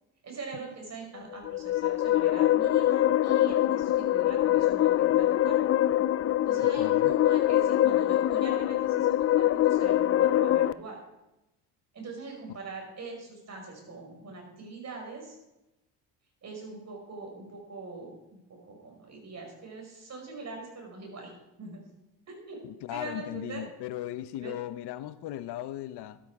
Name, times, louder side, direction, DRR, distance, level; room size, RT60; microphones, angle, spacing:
voice 1, 0.2-5.7 6.4-11.0 11.9-15.4 16.4-21.3 21.6-21.8 22.3-22.6 22.9-23.6 24.4-24.5, right 3 dB, 40° right, 2 dB, 5.8 m, -42 dB
sound 1, 1.3-10.7, left 13 dB, 35° left, 0.4 m, -24 dB
voice 2, 6.6-7.1 22.6-26.2, left 14 dB, 65° left, 13 dB, 1.0 m, -37 dB
13.0 x 12.0 x 4.9 m, 0.94 s
supercardioid pair, 95°, 42 cm